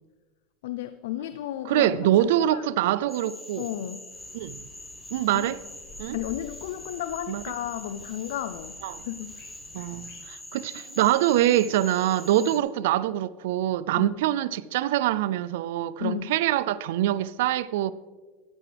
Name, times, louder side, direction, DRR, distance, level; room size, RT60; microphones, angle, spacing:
voice 1, 0.6-2.6 3.6-4.1 5.3-5.5 6.1-8.8 9.0-9.4 12.4-12.5 14.0-14.2 16.0-16.3, left 12 dB, 80° left, 0.4 m, -33 dB
voice 2, 1.7-3.7 4.3-4.6 5.1-5.6 6.0-6.2 7.3-7.4 8.8-9.1 9.7-17.9, right 13 dB, 80° right, 0.3 m, -24 dB
Cricket / Frog, 3.1-12.6, left 1 dB, 5° left, 1.1 m, -44 dB
sound 1, 4.1-10.3, equal, 65° left, 3.6 m, -52 dB
13.5 x 9.6 x 3.3 m
supercardioid pair, 120°, 0 cm